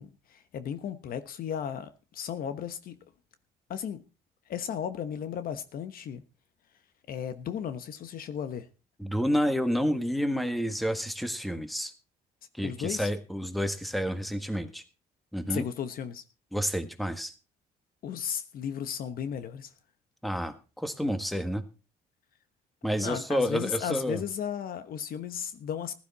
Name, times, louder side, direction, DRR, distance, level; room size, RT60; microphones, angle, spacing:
voice 1, 0.0-3.0 3.7-4.0 4.5-6.2 7.1-8.7 12.6-13.1 15.5-16.2 18.0-19.7 23.0-25.9, left 8 dB, 60° left, 1.2 m, -35 dB
voice 2, 9.0-11.9 12.6-14.8 15.3-15.6 16.5-17.3 20.2-21.6 22.8-24.2, equal, ahead, 1.6 m, -29 dB
15.0 x 12.0 x 4.2 m
cardioid pair, 110°, 17 cm